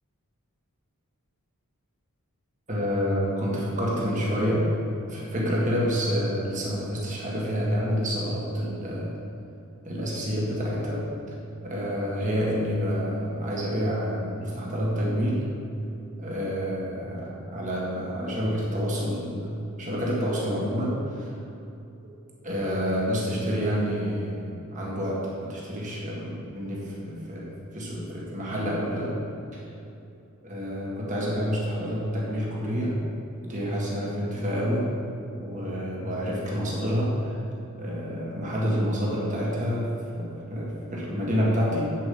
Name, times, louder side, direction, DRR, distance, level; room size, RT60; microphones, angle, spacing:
voice 1, 2.7-4.7 5.1-9.1 9.8-11.0 11.6-15.4 16.2-21.3 22.4-29.1 30.4-33.0 33.4-34.9 35.3-37.4 37.8-41.9, equal, 35° right, -4 dB, 1.8 m, -28 dB
8.3 x 7.5 x 5.4 m, 2.7 s
head